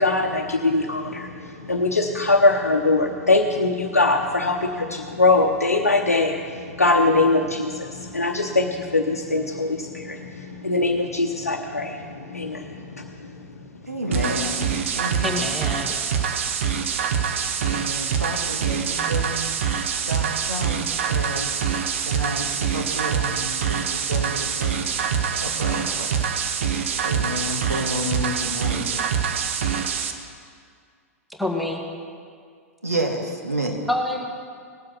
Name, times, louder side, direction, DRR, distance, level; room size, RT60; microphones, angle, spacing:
voice 1, 0.0-13.3 14.1-14.4, left 2 dB, 80° left, 1 dB, 0.9 m, -22 dB
voice 2, 13.9-15.6 17.6-19.5 20.1-21.6 22.1-26.3 27.0-28.8 32.8-33.9, right 1 dB, 80° right, 2 dB, 2.0 m, -30 dB
sound 1, 14.1-30.1, right 7 dB, 55° right, 1.1 m, -25 dB
voice 3, 15.2-15.9 31.4-31.8 33.9-34.2, left 1 dB, ahead, 1 dB, 1.4 m, -26 dB
19.0 x 7.6 x 5.8 m, 2.1 s
figure-of-eight pair, 100°, 8 cm